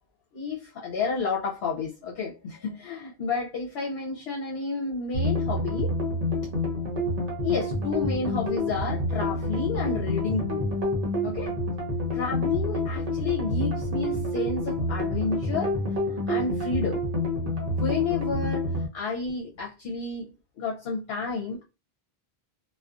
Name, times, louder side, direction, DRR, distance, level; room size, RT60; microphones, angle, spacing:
voice 1, 0.3-5.9 7.4-10.6 11.2-11.5 12.1-15.7 16.3-17.0 17.8-18.7 18.9-21.6, left 4 dB, 75° left, 0.9 m, -31 dB
sound 1, 5.1-18.9, left 1 dB, 45° right, 0.6 m, -28 dB
2.4 x 2.2 x 2.4 m
omnidirectional pair, 1.1 m